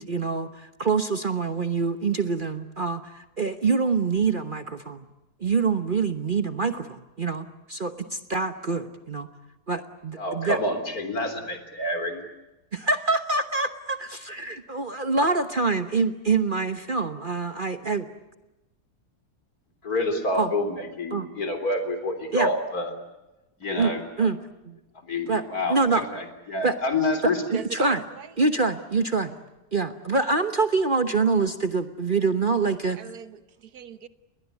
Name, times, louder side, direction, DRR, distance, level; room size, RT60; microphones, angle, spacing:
voice 1, 0.0-5.0 5.4-9.3 9.7-10.6 12.7-18.1 20.3-20.5 21.1-21.3 22.3-22.5 23.8-24.4 24.7-24.8 25.3-25.4 25.7-26.0 26.6-26.7 27.5-28.0 28.4-29.3 29.7-33.0, right 4 dB, 35° right, 9 dB, 1.1 m, -25 dB
voice 2, 10.2-12.2 19.8-22.9 23.6-24.3 24.9-27.4, left 2 dB, 65° left, 8 dB, 4.1 m, -28 dB
voice 3, 27.5-28.3 32.8-34.1, right 8 dB, 70° right, 13 dB, 1.6 m, -38 dB
29.5 x 21.0 x 8.3 m, 0.99 s
omnidirectional pair, 1.7 m